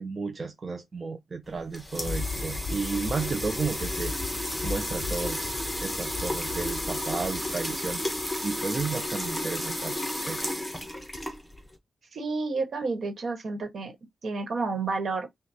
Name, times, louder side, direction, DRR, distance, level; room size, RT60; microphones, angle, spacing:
voice 1, 0.0-4.1 4.6-5.5 5.8-8.0 8.4-10.4, right 4 dB, 35° right, 0.4 m, -33 dB
sound 1, 1.5-11.7, left 1 dB, 5° left, 1.0 m, -33 dB
Thunder, 1.6-9.1 9.6-9.7, left 4 dB, 35° left, 0.8 m, -38 dB
voice 2, 12.1-13.9 14.2-15.3, right 3 dB, 60° right, 1.3 m, -30 dB
5.8 x 2.3 x 2.8 m
wide cardioid pair, 145°, 0 cm